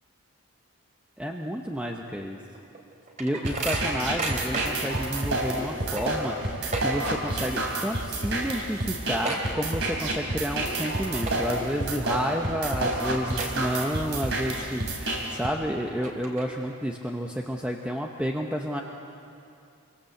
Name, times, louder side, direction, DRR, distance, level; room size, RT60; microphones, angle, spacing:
voice 1, 1.2-2.4 3.2-18.8, equal, 5° right, 1 dB, 1.0 m, -30 dB
sound 1, 2.5-5.0 5.4-5.5 5.8-7.5 7.7-8.1 8.4-8.5 8.8-10.2 10.6-10.8 11.2-11.7 12.2-12.3 12.9-13.0 13.4-14.1 14.5-14.6 15.4-15.5 15.9-16.8, right 3 dB, 35° right, 3.0 m, -34 dB
sound 2, 3.4-15.5, right 1 dB, 55° right, 3.6 m, -29 dB
26.0 x 23.5 x 7.9 m, 2.6 s
head